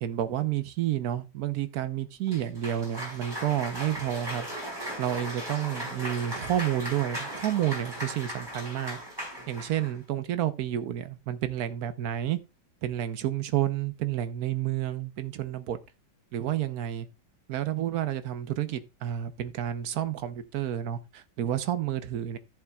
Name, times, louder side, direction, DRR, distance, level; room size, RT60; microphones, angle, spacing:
voice 1, 0.0-4.5 5.0-9.0 9.5-12.4 12.8-15.8 16.3-17.1 17.5-22.4, right 11 dB, 65° right, 1.2 m, -30 dB
Cheering / Applause, 2.3-10.0, equal, 10° right, 4.8 m, -37 dB
14.0 x 7.2 x 2.3 m
omnidirectional pair, 1.9 m